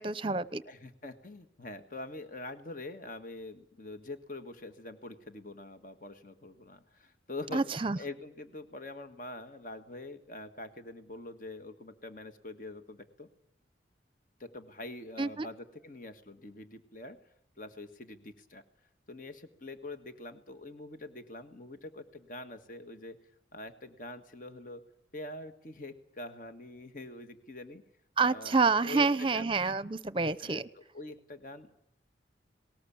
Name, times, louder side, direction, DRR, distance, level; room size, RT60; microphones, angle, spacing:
voice 1, 0.0-0.6 7.5-8.0 15.2-15.5 28.2-30.7, right 4 dB, 30° right, 17 dB, 0.8 m, -28 dB
voice 2, 0.6-13.3 14.4-17.2 17.6-18.6 19.1-23.2 23.5-24.8 25.1-27.8 28.2-29.5 30.4-31.8, left 2 dB, 45° left, 9 dB, 1.6 m, -45 dB
19.5 x 19.5 x 8.6 m, 0.71 s
head